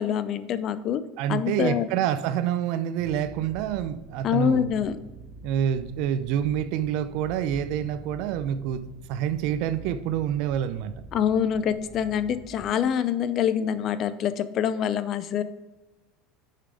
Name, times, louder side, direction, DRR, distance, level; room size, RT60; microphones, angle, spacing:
voice 1, 0.0-1.0 1.3-1.9 4.2-5.0 11.1-15.4, left 9 dB, 50° left, 13 dB, 0.6 m, -25 dB
voice 2, 1.2-4.7 5.4-10.9, right 10 dB, 65° right, 12 dB, 0.6 m, -27 dB
sound 1, 3.0-12.7, right 2 dB, 30° right, 0.9 m, -45 dB
6.6 x 5.8 x 4.9 m, 1.1 s
hypercardioid pair, 90°, 0 cm